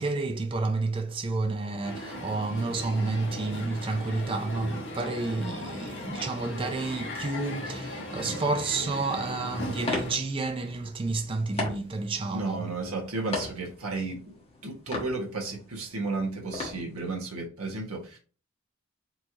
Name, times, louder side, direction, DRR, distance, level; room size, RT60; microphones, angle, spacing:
voice 1, 0.0-12.7, right 3 dB, 25° right, 0.4 m, -30 dB
Crowd, 1.8-10.1, left 1 dB, 55° left, 1.5 m, -37 dB
sound 1, 9.0-17.5, left 2 dB, 25° left, 1.2 m, -39 dB
voice 2, 12.3-14.2 14.6-18.2, right 3 dB, 80° right, 1.4 m, -33 dB
4.4 x 3.1 x 2.8 m
head